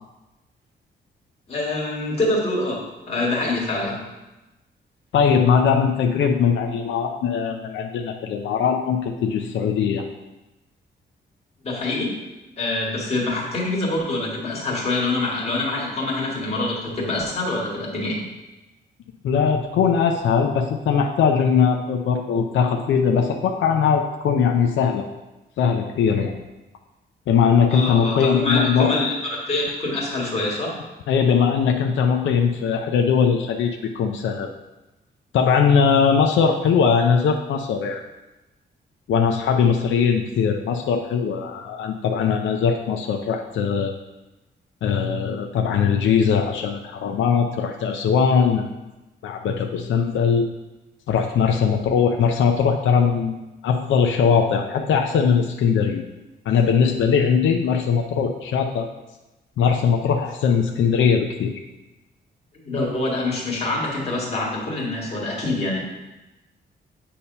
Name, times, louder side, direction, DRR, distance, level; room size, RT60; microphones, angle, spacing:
voice 1, 1.5-2.8 3.1-4.0 11.6-12.2 12.6-18.3 27.7-29.1 29.5-30.8 62.6-65.8, left 2 dB, 35° left, -4 dB, 1.8 m, -25 dB
voice 2, 5.1-10.0 19.2-25.0 25.6-26.3 27.3-29.0 31.1-34.5 35.3-38.0 39.1-43.9 44.8-48.7 49.2-50.5 51.1-53.3 53.6-56.0 56.5-58.9 59.6-61.5, left 6 dB, 90° left, 3 dB, 0.5 m, -20 dB
8.4 x 2.9 x 5.4 m, 1.0 s
wide cardioid pair, 170°, 19 cm